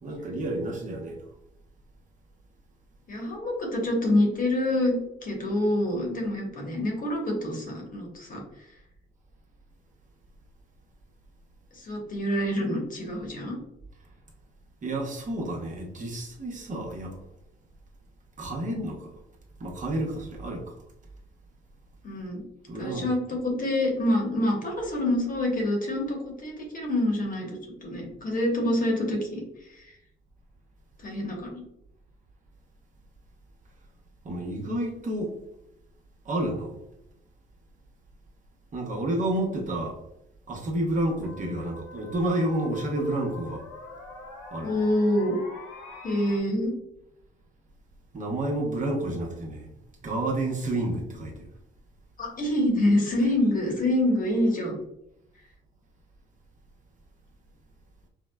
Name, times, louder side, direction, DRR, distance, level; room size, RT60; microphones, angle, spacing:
voice 1, 0.0-1.2 14.8-17.2 18.4-19.1 19.6-20.8 22.7-23.4 34.2-35.3 36.2-36.8 38.7-40.0 40.5-43.6 44.5-44.8 48.1-49.7 50.0-51.5, right 1 dB, 40° right, -1 dB, 0.8 m, -30 dB
voice 2, 3.1-8.4 11.7-13.5 22.0-22.4 22.8-29.9 31.0-31.6 44.6-45.4 46.0-46.7 52.2-54.8, left 1 dB, 45° left, 0 dB, 1.1 m, -26 dB
sound 1, 40.5-40.6 41.2-46.4, left 3 dB, 90° left, 1.1 m, -44 dB
4.5 x 2.1 x 2.2 m, 0.84 s
cardioid pair, 90°, 20 cm